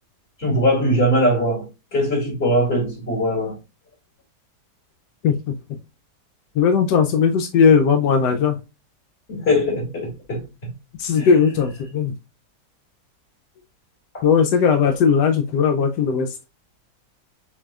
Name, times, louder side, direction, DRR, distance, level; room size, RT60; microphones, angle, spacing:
voice 1, 0.4-3.6 9.3-10.7 11.2-11.4 14.1-14.2 14.8-14.9, equal, 35° left, 2.6 m, -21 dB
voice 2, 5.2-5.5 6.6-8.6 11.0-12.1 14.2-16.3, left 6 dB, 85° left, 1.3 m, -18 dB
7.1 x 2.8 x 2.3 m
omnidirectional pair, 1.8 m